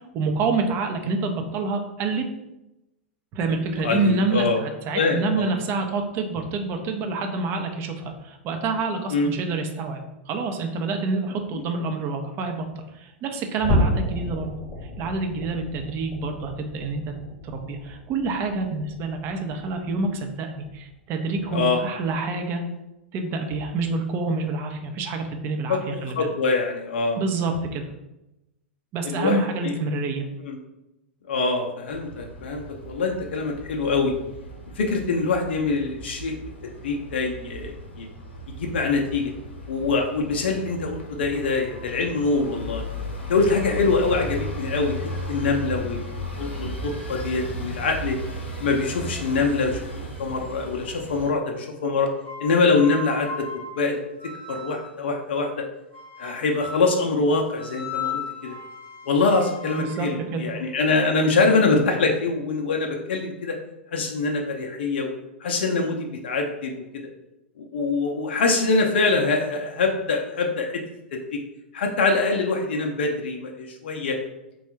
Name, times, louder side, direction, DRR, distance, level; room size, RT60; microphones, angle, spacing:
voice 1, 0.1-2.2 3.3-12.6 12.9-14.5 15.0-17.1 17.4-22.6 23.1-26.3 27.2-27.9 28.9-30.3 59.8-60.4, right 3 dB, 35° right, 5 dB, 0.6 m, -27 dB
voice 2, 3.7-4.6 5.0-5.5 9.1-9.3 11.5-11.6 21.5-21.8 25.7-27.2 29.0-29.7 30.4-30.6 31.3-34.1 34.8-36.4 36.8-38.1 38.6-39.3 39.7-42.8 43.3-46.0 46.4-48.2 48.6-52.1 52.4-53.5 53.7-54.0 54.5-55.6 56.2-58.5 59.1-63.6 63.9-65.1 65.4-66.7 67.6-70.8 71.3-71.4 71.7-74.2, left 3 dB, 65° left, 2 dB, 0.5 m, -24 dB
sound 1, 13.6-20.3 20.6-20.9 21.3-21.5 22.0-22.2, left 1 dB, 10° left, 0.9 m, -31 dB
sound 2, 31.9-51.3, equal, 80° left, 0.9 m, -36 dB
sound 3, 52.2-55.1 55.9-57.0 57.6-61.5, left 4 dB, 85° right, 1.2 m, -37 dB
3.4 x 2.3 x 4.3 m, 0.93 s
figure-of-eight pair, 100°, 6 cm